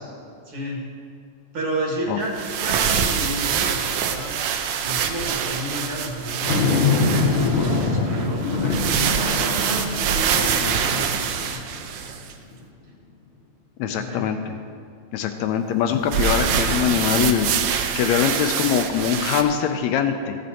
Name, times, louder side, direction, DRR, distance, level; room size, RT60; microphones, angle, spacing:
voice 1, 0.5-0.8 1.5-4.4 4.8-7.1 7.8-11.1 13.8-14.3, right 1 dB, 50° right, -3 dB, 2.6 m, -31 dB
sound 1, 2.2-12.3 16.1-19.4, right 7 dB, 85° right, 2.0 m, -25 dB
sound 2, 6.5-12.0 12.5-12.6 16.5-17.6, left 4 dB, 55° left, 1.7 m, -24 dB
voice 2, 13.8-14.6 15.1-17.5 18.0-20.4, left 8 dB, 80° left, 7 dB, 1.8 m, -22 dB
15.0 x 7.6 x 4.1 m, 2.2 s
omnidirectional pair, 3.3 m